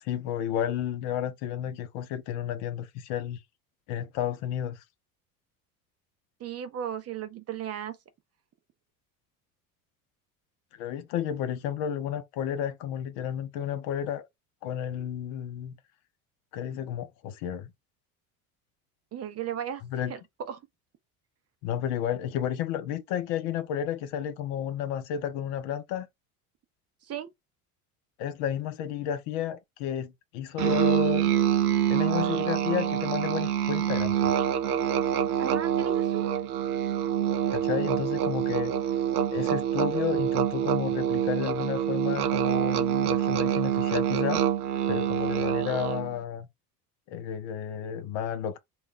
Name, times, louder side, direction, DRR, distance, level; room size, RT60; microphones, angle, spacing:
voice 1, 0.0-3.4 3.9-4.8 10.8-14.3 14.6-15.8 16.5-17.7 19.8-20.1 21.6-26.1 28.2-31.3 31.9-34.3 37.5-38.7 39.3-44.4 44.9-46.5 47.1-48.6, left 9 dB, 65° left, 0.7 m, -32 dB
voice 2, 6.4-8.0 19.1-19.8 20.1-20.6 27.0-27.3 35.4-36.5, right 9 dB, 35° right, 0.5 m, -35 dB
Musical instrument, 30.6-46.1, right 10 dB, 90° right, 0.6 m, -26 dB
2.4 x 2.2 x 3.6 m
hypercardioid pair, 75°, 44 cm